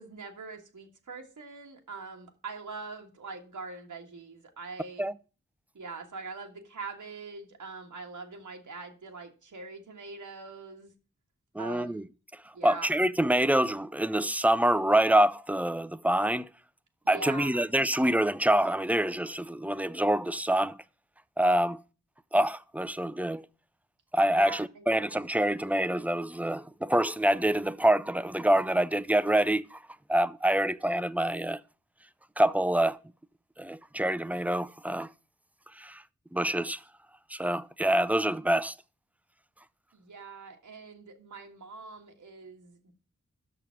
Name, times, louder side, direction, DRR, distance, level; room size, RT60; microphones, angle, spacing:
voice 1, 0.0-5.0 5.7-10.9 11.6-12.1 12.5-12.9 17.0-17.6 24.4-25.0 39.9-42.9, right 4 dB, 85° right, 1.6 m, -43 dB
voice 2, 11.5-12.0 12.6-16.5 17.1-20.8 21.4-21.8 22.3-23.4 24.1-29.8 30.1-31.6 32.4-33.0 33.6-35.1 35.8-36.0 36.3-36.8 37.3-38.7, right 1 dB, 5° right, 0.5 m, -26 dB
7.0 x 6.3 x 5.8 m
cardioid pair, 40°, 30 cm